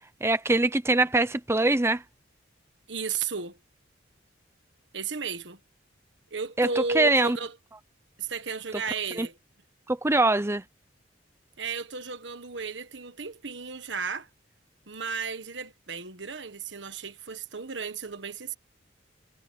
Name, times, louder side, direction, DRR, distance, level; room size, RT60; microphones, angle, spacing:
voice 1, 0.2-2.0 6.6-6.7 6.9-7.4 9.2-9.3 9.9-10.6, right 2 dB, 15° right, 0.7 m, -23 dB
voice 2, 2.9-3.6 4.9-5.6 6.3-7.5 8.2-9.4 11.6-14.3 14.9-18.5, right 5 dB, 70° right, 1.5 m, -34 dB
head